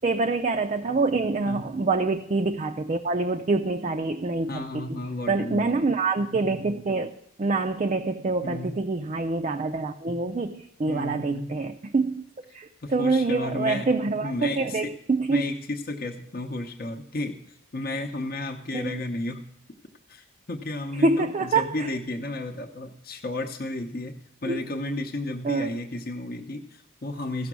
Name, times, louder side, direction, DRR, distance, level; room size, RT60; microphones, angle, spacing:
voice 1, 0.0-4.9 5.3-7.1 7.4-12.2 12.5-15.4 18.7-18.9 21.0-21.7 24.5-24.6 25.4-25.7, right 3 dB, 35° right, 4 dB, 0.4 m, -26 dB
voice 2, 4.5-5.9 8.4-8.8 10.9-11.5 12.8-13.9 14.2-14.9 15.3-19.4 20.1-27.5, left 2 dB, 45° left, 2 dB, 0.7 m, -33 dB
15.0 x 6.1 x 6.1 m, 0.78 s
head